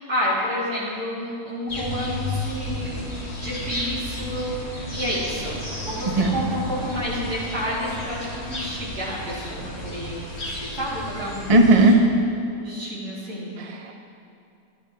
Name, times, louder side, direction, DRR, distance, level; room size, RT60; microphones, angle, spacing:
voice 1, 0.0-3.1 3.4-11.6 12.6-13.5, equal, 60° right, -9 dB, 4.2 m, -30 dB
sound 1, 1.7-11.9, left 1 dB, 40° left, 1.9 m, -33 dB
voice 2, 11.5-12.0 13.6-13.9, right 2 dB, 35° right, 3 dB, 0.6 m, -16 dB
18.0 x 10.5 x 3.4 m, 2.5 s
omnidirectional pair, 1.9 m